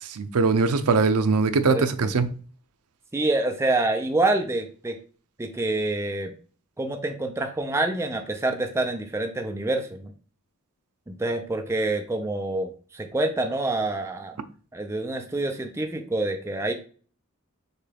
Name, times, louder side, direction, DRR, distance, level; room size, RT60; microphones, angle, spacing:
voice 1, 0.0-2.3, right 4 dB, 85° right, 0.5 m, -21 dB
voice 2, 1.7-2.1 3.1-5.0 5.4-6.3 6.8-10.1 11.1-14.4 14.7-16.7, right 2 dB, 10° right, 0.4 m, -27 dB
6.6 x 2.3 x 3.4 m
head